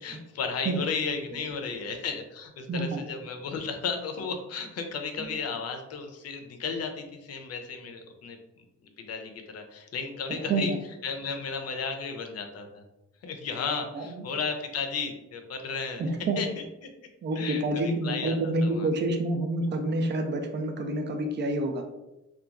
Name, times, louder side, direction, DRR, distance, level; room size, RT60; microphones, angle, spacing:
voice 1, 0.0-8.4 9.0-10.7 11.0-12.8 13.2-16.6 17.3-18.9, left 5 dB, 55° left, 5 dB, 0.5 m, -34 dB
voice 2, 2.7-3.0 10.5-10.6 13.9-14.0 16.0-16.4 17.2-21.9, right 2 dB, 35° right, 5 dB, 0.5 m, -28 dB
2.8 x 2.3 x 2.4 m, 0.97 s
cardioid pair, 90°, 30 cm